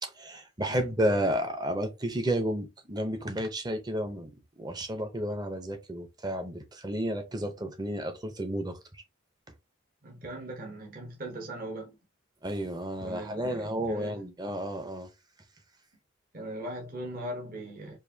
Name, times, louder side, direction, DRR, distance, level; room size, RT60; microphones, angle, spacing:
voice 1, 0.0-4.3 4.6-8.8 12.4-15.1, right 1 dB, 20° right, 0.7 m, -31 dB
voice 2, 10.0-12.0 13.0-14.2 16.3-18.0, right 1 dB, 45° right, 1.0 m, -39 dB
4.7 x 2.6 x 2.7 m
head